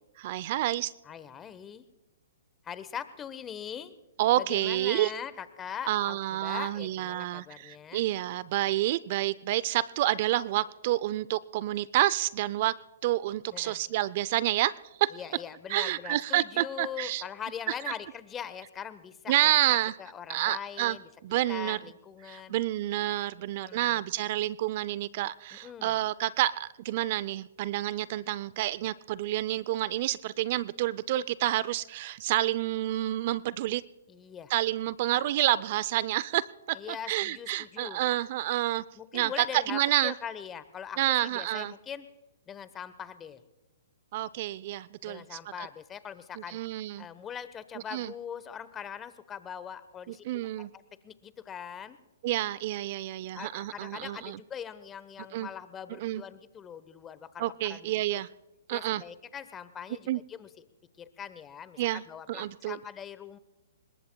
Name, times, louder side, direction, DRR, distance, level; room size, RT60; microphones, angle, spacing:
voice 1, 0.2-0.9 4.2-5.1 5.9-12.8 13.0-14.7 15.0-15.1 15.7-17.2 17.9-18.0 19.3-19.9 20.3-21.0 21.2-21.8 22.2-33.8 34.5-36.8 37.1-38.8 39.1-40.1 41.0-41.7 44.1-45.4 46.5-47.1 47.9-48.1 50.2-50.7 52.2-54.4 55.3-55.5 56.0-56.2 57.4-58.3 58.7-59.0 60.1-60.2 61.8-62.0 62.3-62.8, right 15 dB, 45° right, 19 dB, 0.4 m, -29 dB
voice 2, 1.0-1.9 2.6-3.9 4.4-8.1 13.5-13.8 15.1-21.1 21.5-22.6 23.4-24.0 25.5-26.0 34.1-34.5 36.7-38.0 39.0-42.1 42.5-43.4 45.0-46.6 47.0-52.0 53.3-58.2 58.7-60.5 61.0-63.4, left 8 dB, 20° left, 14 dB, 1.0 m, -42 dB
26.5 x 21.0 x 2.3 m, 1.1 s
hypercardioid pair, 130°, 0 cm